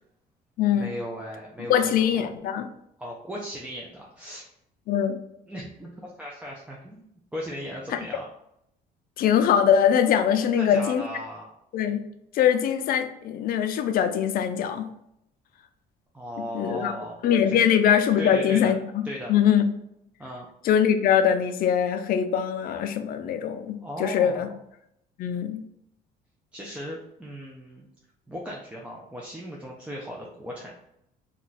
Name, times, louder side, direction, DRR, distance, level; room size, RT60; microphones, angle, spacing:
voice 1, 0.7-2.3 3.0-4.4 5.5-8.3 10.4-11.5 16.1-17.2 17.5-17.7 18.2-18.8 19.0-19.4 20.2-20.5 23.8-24.6 26.5-27.8 28.3-30.7, equal, 5° right, -3 dB, 0.4 m, -37 dB
voice 2, 1.7-2.7 4.9-5.2 7.9-8.0 9.2-11.0 11.7-12.0 12.3-14.9 16.5-16.9 17.2-18.8 19.3-19.7 20.6-24.5 25.2-25.6, left 8 dB, 60° left, 8 dB, 0.4 m, -22 dB
2.4 x 2.2 x 3.9 m, 0.77 s
cardioid pair, 110°, 17 cm